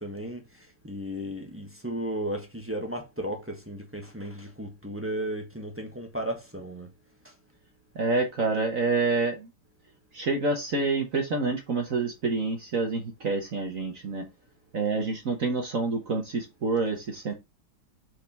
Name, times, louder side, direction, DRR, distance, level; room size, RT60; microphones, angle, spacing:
voice 1, 0.0-6.9 7.2-7.3, right 1 dB, 10° right, 1.0 m, -35 dB
voice 2, 8.0-9.5 10.1-14.2 14.7-17.3, right 3 dB, 45° right, 1.4 m, -27 dB
5.1 x 4.6 x 5.3 m
omnidirectional pair, 2.3 m